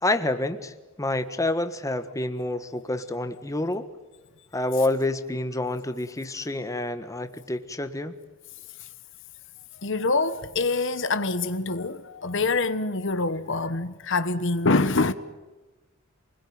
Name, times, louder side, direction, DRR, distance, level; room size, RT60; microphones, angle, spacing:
voice 1, 0.0-3.9 4.5-8.1, left 2 dB, 15° left, 1.5 m, -28 dB
voice 2, 9.8-15.1, left 3 dB, 65° left, 1.2 m, -25 dB
28.0 x 21.0 x 9.4 m
head